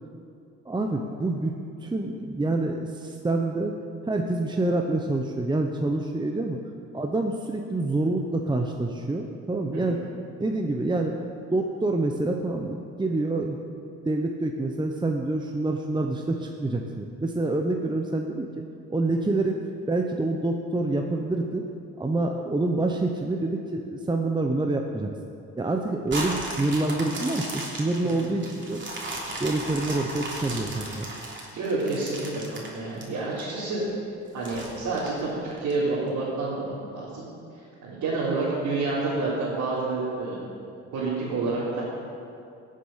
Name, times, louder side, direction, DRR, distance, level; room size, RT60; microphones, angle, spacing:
voice 1, 0.6-1.5 1.8-3.7 4.1-6.6 6.9-10.0 10.4-11.1 11.5-13.6 14.0-18.6 18.9-21.6 22.0-25.1 25.6-28.8 29.4-31.0, right 2 dB, 15° right, 3 dB, 0.9 m, -27 dB
sound 1, 26.1-33.4 33.9-34.0 34.4-35.7 36.3-36.4, right 2 dB, 40° right, 3.3 m, -35 dB
voice 2, 31.5-33.8 34.3-37.3 37.8-40.4 40.9-41.8, right 3 dB, 85° right, -11 dB, 3.8 m, -29 dB
18.0 x 7.6 x 5.7 m, 2.5 s
cardioid pair, 90°, 30 cm